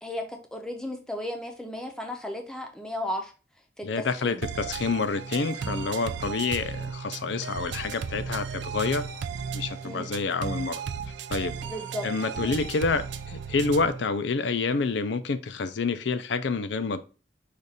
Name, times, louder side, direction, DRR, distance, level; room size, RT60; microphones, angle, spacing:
voice 1, 0.0-3.3 3.8-4.4 9.8-10.2 11.6-12.1 12.4-12.6, left 1 dB, 5° left, 0.6 m, -35 dB
voice 2, 3.8-9.0 9.5-10.8 11.3-11.5 12.0-17.0, left 4 dB, 65° left, 0.5 m, -28 dB
sound 1, 4.4-14.0, right 6 dB, 65° right, 0.4 m, -35 dB
5.0 x 2.5 x 4.1 m
head